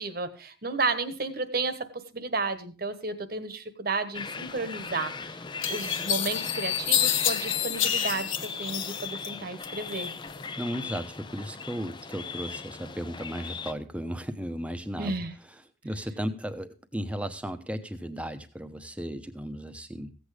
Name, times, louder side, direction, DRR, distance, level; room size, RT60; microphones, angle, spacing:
voice 1, 0.0-5.4 5.7-10.1 15.0-15.3, right 3 dB, 50° right, 12 dB, 1.3 m, -32 dB
sound 1, 4.1-13.7, left 5 dB, 25° left, 0.5 m, -38 dB
sound 2, 4.9-5.0 5.6-9.3 9.6-10.4, left 10 dB, 85° left, 1.3 m, -28 dB
voice 2, 10.6-15.1 15.8-20.1, equal, 5° right, 9 dB, 0.9 m, -35 dB
15.5 x 8.2 x 5.0 m, 0.35 s
head